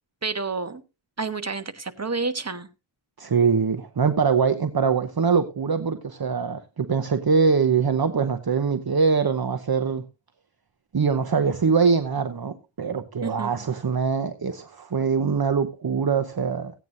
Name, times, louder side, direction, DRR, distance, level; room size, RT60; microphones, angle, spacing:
voice 1, 0.2-0.8 1.2-2.7 13.2-13.5, right 4 dB, 30° right, 1.3 m, -29 dB
voice 2, 3.2-10.0 10.9-16.7, right 5 dB, 50° right, 0.8 m, -23 dB
16.0 x 9.1 x 2.6 m
wide cardioid pair, 50°, 48 cm